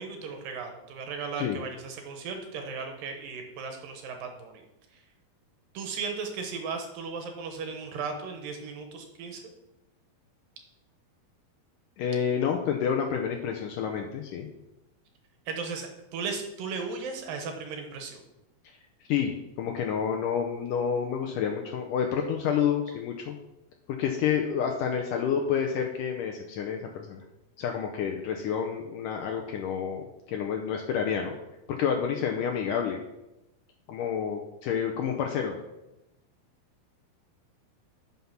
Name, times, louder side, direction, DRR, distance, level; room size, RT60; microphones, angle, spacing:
voice 1, 0.0-4.6 4.9-5.0 5.7-9.4 15.5-18.2, right 5 dB, 70° right, 4 dB, 2.5 m, -36 dB
voice 2, 12.0-14.5 19.1-23.4 24.0-27.2 27.6-31.3 31.7-33.0 33.9-35.6, left 7 dB, 80° left, 2 dB, 2.0 m, -29 dB
9.5 x 5.6 x 5.8 m, 0.93 s
omnidirectional pair, 4.5 m